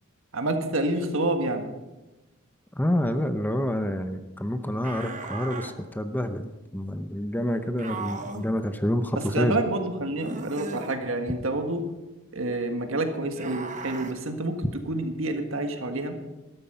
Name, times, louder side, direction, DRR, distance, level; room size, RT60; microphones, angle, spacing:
voice 1, 0.3-1.7 9.3-11.8 12.3-14.6 14.9-16.2, right 2 dB, 65° right, 6 dB, 1.7 m, -28 dB
voice 2, 2.8-9.6, equal, 10° left, 9 dB, 0.6 m, -28 dB
sound 1, 4.8-5.8 7.8-8.5 10.2-11.0 13.3-14.1, right 3 dB, 35° right, 1.0 m, -37 dB
13.0 x 12.5 x 5.6 m, 1.1 s
head